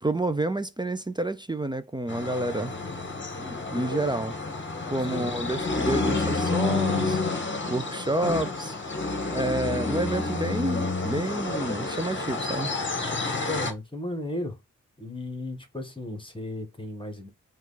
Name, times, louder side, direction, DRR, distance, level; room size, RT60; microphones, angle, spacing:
voice 1, 0.0-2.7 3.4-4.3 4.9-7.2 7.7-8.8 9.3-12.7, right 1 dB, 15° right, 0.4 m, -29 dB
sound 1, 2.1-13.7, left 3 dB, 35° left, 1.0 m, -29 dB
voice 2, 13.4-14.6 15.0-17.3, left 1 dB, 15° left, 1.3 m, -35 dB
4.6 x 2.4 x 3.8 m
wide cardioid pair, 90°, 32 cm